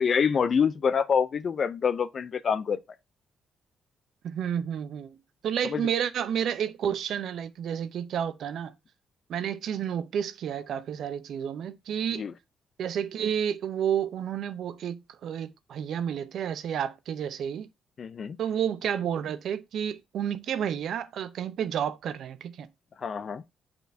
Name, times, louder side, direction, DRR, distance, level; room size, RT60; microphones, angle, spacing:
voice 1, 0.0-2.8 5.6-5.8 12.1-12.3 18.0-18.4 23.0-23.4, left 6 dB, 50° left, 0.4 m, -26 dB
voice 2, 4.2-5.2 5.4-8.7 9.3-12.3 12.8-17.7 18.4-22.7, right 9 dB, 75° right, 0.6 m, -30 dB
8.1 x 4.4 x 2.6 m
cardioid pair, 85°, 0 cm